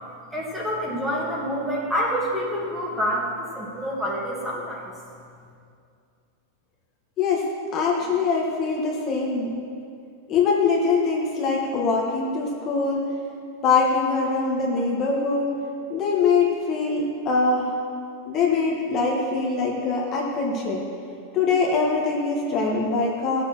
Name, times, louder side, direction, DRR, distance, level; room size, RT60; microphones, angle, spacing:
voice 1, 0.3-4.9, equal, 5° right, -4 dB, 2.2 m, -27 dB
voice 2, 7.7-9.5 10.3-13.0 13.6-15.5 15.9-17.7 18.2-20.8 21.3-23.4, left 4 dB, 30° left, -3 dB, 1.7 m, -23 dB
15.0 x 6.9 x 6.3 m, 2.4 s
supercardioid pair, 145°, 0 cm